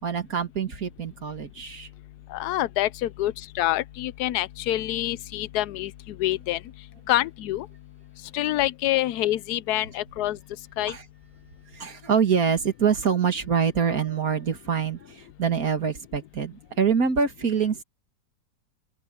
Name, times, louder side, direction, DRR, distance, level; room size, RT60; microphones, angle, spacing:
voice 1, 0.0-1.9 10.9-11.0 11.7-17.8, right 6 dB, 55° right, 2.7 m, -25 dB
voice 2, 2.3-5.9 6.2-6.6 7.1-7.7 8.3-10.4 10.8-10.9, left 15 dB, 70° left, 1.1 m, -26 dB
open air
omnidirectional pair, 1.8 m